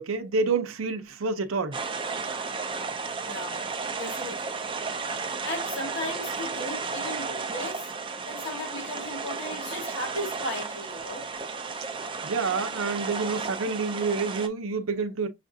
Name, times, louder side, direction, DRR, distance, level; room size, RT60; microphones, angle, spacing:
voice 1, 0.0-1.8 12.2-15.3, right 4 dB, 80° right, 0.7 m, -28 dB
sound 1, 1.7-14.5, right 4 dB, 25° right, 0.4 m, -33 dB
voice 2, 3.2-3.6 4.0-4.6 5.2-7.9 8.3-11.3, left 1 dB, 55° left, 1.8 m, -36 dB
6.3 x 2.5 x 2.6 m
head